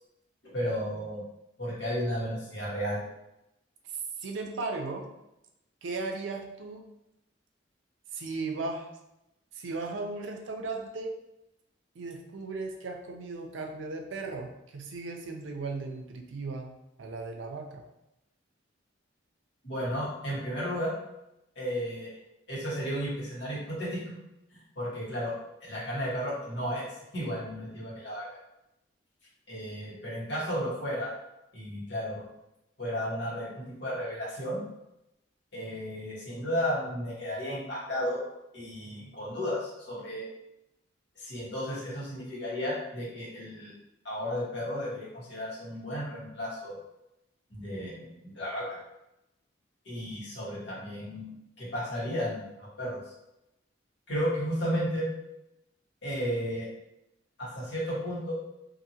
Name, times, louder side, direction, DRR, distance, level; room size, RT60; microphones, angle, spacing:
voice 1, 0.5-1.2 1.6-3.0 19.6-21.0 21.5-22.1 22.5-24.2 24.5-25.3 25.6-26.9 27.1-28.4 29.5-31.1 31.5-32.2 32.8-34.6 35.5-38.2 38.5-40.3 41.2-43.7 44.0-46.7 47.5-48.8 49.8-51.3 51.6-53.0 54.1-55.1 56.0-56.7 57.4-58.3, equal, 65° left, -7 dB, 1.3 m, -33 dB
voice 2, 4.2-5.1 5.8-6.8 8.1-8.9 9.5-11.2 12.0-17.8, right 3 dB, 85° right, 3 dB, 0.5 m, -36 dB
2.7 x 2.6 x 2.7 m, 0.88 s
head